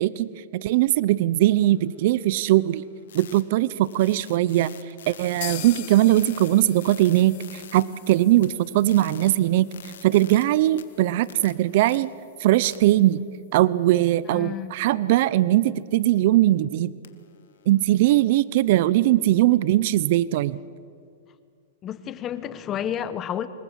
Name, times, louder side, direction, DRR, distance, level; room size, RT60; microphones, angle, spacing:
voice 1, 0.0-2.8 3.1-4.7 5.1-12.1 12.4-13.2 13.5-16.9 17.7-20.6, right 15 dB, 55° right, 18 dB, 0.7 m, -20 dB
sound 1, 1.4-5.8 6.2-8.1 8.4-10.4 10.8-12.0 12.6-12.8 17.0-18.3, left 9 dB, 80° left, 2.1 m, -48 dB
sound 2, 5.4-13.1 13.4-13.5 13.8-13.9 14.4-14.5, left 16 dB, 55° left, 1.5 m, -43 dB
voice 2, 14.3-14.7 21.8-23.5, left 9 dB, 25° left, 13 dB, 1.2 m, -30 dB
26.0 x 22.0 x 7.5 m, 2.3 s
hypercardioid pair, 145°, 0 cm